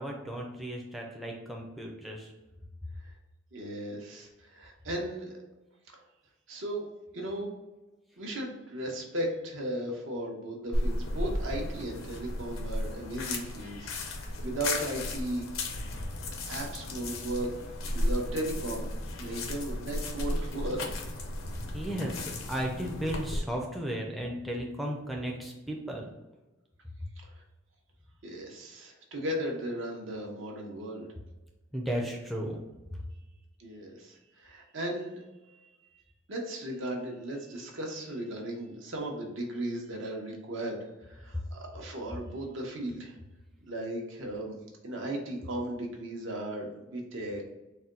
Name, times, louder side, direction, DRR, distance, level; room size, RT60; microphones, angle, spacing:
voice 1, 0.0-2.3 21.7-26.1 31.7-32.6, equal, ahead, 0 dB, 0.4 m, -35 dB
voice 2, 3.5-5.4 5.9-6.0 6.5-6.9 7.1-7.5 8.2-15.5 16.5-17.5 17.9-18.9 19.2-20.9 27.2-27.4 28.2-31.1 33.6-35.2 35.6-36.0 36.3-43.2 43.7-44.6 44.8-47.5, right 1 dB, 70° right, 0 dB, 0.9 m, -36 dB
sound 1, 10.7-23.4, left 1 dB, 85° left, 0.6 m, -34 dB
4.2 x 2.2 x 3.7 m, 1.1 s
head